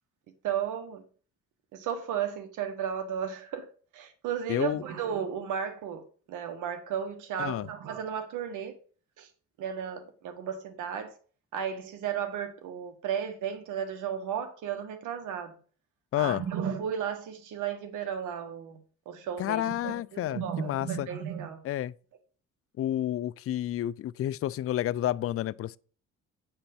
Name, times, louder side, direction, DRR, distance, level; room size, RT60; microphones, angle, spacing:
voice 1, 0.4-1.0 1.7-3.7 3.9-6.0 6.3-8.7 9.2-9.3 9.6-11.1 11.5-15.6 16.2-18.8 19.0-21.6, right 8 dB, 85° right, 1.5 m, -34 dB
voice 2, 4.5-4.8 7.4-7.7 16.1-16.4 19.4-21.1 21.6-21.9 22.8-25.8, left 12 dB, 50° left, 0.4 m, -30 dB
8.9 x 4.4 x 7.0 m
cardioid pair, 90°, 30 cm